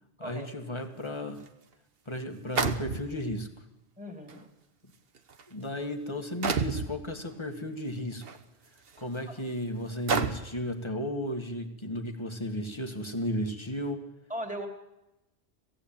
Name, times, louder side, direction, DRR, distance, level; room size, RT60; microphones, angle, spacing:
voice 1, 0.2-1.4 2.1-3.5 5.5-8.2 9.0-14.0, left 1 dB, 25° left, 6 dB, 1.9 m, -34 dB
sound 1, 1.5-1.6 2.6-3.4 4.3-4.4 5.2-5.4 6.4-6.9 8.2-8.4 9.0-9.1 10.1-10.6, right 5 dB, 60° right, 1.3 m, -29 dB
voice 2, 4.0-4.5 9.3-9.4 14.3-14.7, equal, 5° right, 3 dB, 2.8 m, -38 dB
19.0 x 16.0 x 8.9 m, 0.96 s
omnidirectional pair, 1.2 m